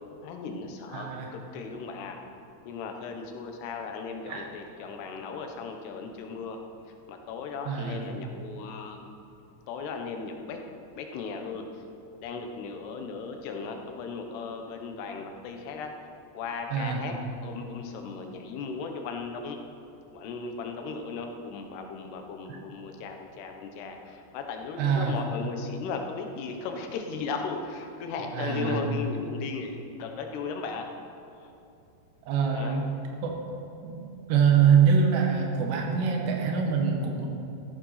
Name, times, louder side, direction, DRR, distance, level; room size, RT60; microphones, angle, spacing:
voice 1, 0.2-2.2 2.6-6.6 6.9-9.1 9.7-10.6 10.9-11.8 12.2-15.9 16.3-17.1 17.4-19.6 20.1-30.9 31.4-31.5 32.5-32.8, left 5 dB, 80° left, 4 dB, 3.3 m, -36 dB
voice 2, 0.9-1.3 4.3-4.5 7.7-8.0 16.7-17.0 22.5-22.6 24.8-25.2 28.3-28.8 32.3-32.9 33.2-33.4 33.8-34.0 34.3-37.3, right 6 dB, 85° right, 1 dB, 3.6 m, -24 dB
14.5 x 13.0 x 5.8 m, 2.7 s
omnidirectional pair, 4.7 m